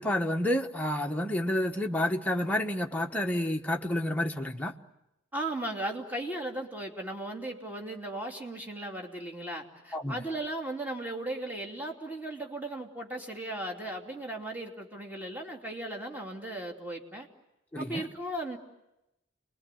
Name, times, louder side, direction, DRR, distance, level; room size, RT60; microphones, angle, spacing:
voice 1, 0.0-4.7 9.9-10.1 17.7-18.0, left 1 dB, 10° left, 2 dB, 1.1 m, -29 dB
voice 2, 5.3-17.3 17.8-18.6, right 1 dB, 10° right, 1 dB, 2.9 m, -36 dB
29.5 x 22.0 x 9.2 m, 0.92 s
head